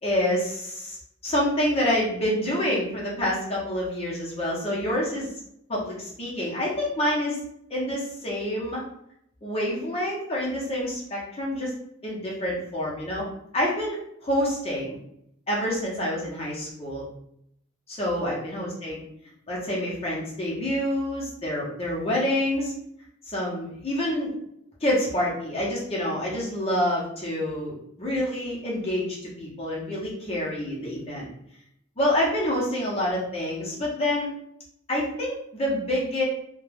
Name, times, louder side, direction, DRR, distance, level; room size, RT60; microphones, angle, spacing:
voice 1, 0.0-5.3 5.7-7.4 7.7-8.8 9.4-11.7 12.0-13.3 13.5-15.0 15.5-17.0 17.9-19.0 19.5-22.7 23.3-24.3 24.8-29.1 29.4-31.3 32.0-34.3 34.9-36.2, left 1 dB, 30° left, -5 dB, 0.7 m, -27 dB
2.3 x 2.2 x 3.2 m, 0.74 s
head